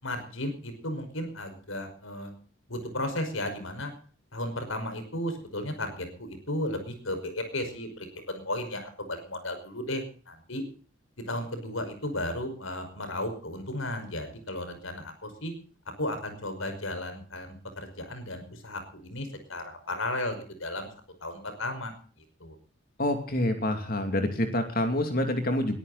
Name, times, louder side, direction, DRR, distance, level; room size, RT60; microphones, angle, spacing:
voice 1, 0.0-2.3 2.7-3.9 4.3-10.6 11.2-15.5 16.0-20.9 21.2-21.9 22.4-22.6, left 1 dB, 85° left, 8 dB, 5.4 m, -34 dB
voice 2, 23.0-25.8, left 1 dB, 45° left, 6 dB, 2.8 m, -27 dB
22.0 x 14.0 x 4.2 m, 0.44 s
head